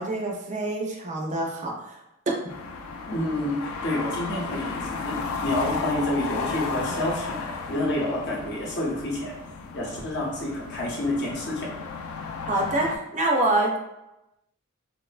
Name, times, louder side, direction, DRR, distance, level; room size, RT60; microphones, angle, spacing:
voice 1, 0.0-2.0 2.3-2.4 12.5-13.8, right 2 dB, 35° right, 0 dB, 0.4 m, -26 dB
sound 1, 2.5-13.0, left 4 dB, 85° left, 0.3 m, -34 dB
voice 2, 3.0-9.3 9.7-11.7, left 1 dB, 55° left, -2 dB, 0.7 m, -29 dB
2.9 x 2.1 x 2.4 m, 0.90 s
head